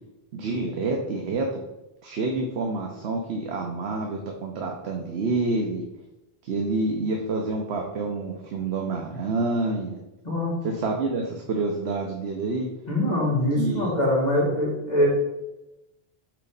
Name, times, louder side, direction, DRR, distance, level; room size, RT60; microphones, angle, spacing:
voice 1, 0.3-1.6 2.0-5.8 6.4-10.0 10.6-12.7 13.6-13.9, right 3 dB, 85° right, 2 dB, 1.0 m, -28 dB
voice 2, 12.9-15.1, left 1 dB, 40° left, -5 dB, 2.2 m, -23 dB
4.8 x 4.0 x 5.1 m, 0.95 s
omnidirectional pair, 1.1 m